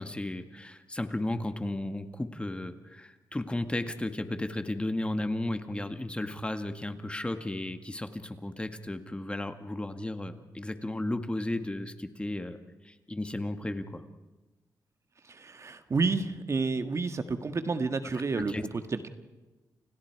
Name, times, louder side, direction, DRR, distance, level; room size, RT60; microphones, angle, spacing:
voice 1, 0.0-12.6 12.8-14.0 18.4-18.6, left 1 dB, 15° left, 8 dB, 1.8 m, -34 dB
voice 2, 15.2-18.5 18.9-19.1, right 4 dB, 45° right, 8 dB, 1.7 m, -30 dB
30.0 x 28.5 x 4.7 m, 1.2 s
cardioid pair, 80°, 7 cm